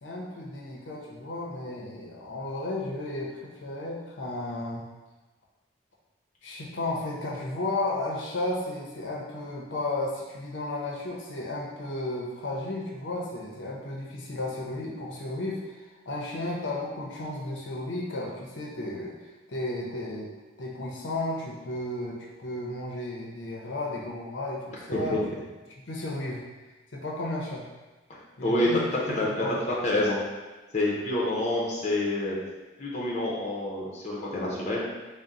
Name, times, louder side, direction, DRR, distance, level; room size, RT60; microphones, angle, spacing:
voice 1, 0.0-4.9 6.4-19.2 19.5-20.3 20.6-25.2 25.9-26.4 26.9-27.6 28.4-29.5, left 2 dB, 70° left, -3 dB, 0.6 m, -33 dB
voice 2, 29.2-30.2 30.7-32.4 32.8-34.8, left 1 dB, 35° left, -5 dB, 0.6 m, -27 dB
3.7 x 2.1 x 4.0 m, 1.2 s
head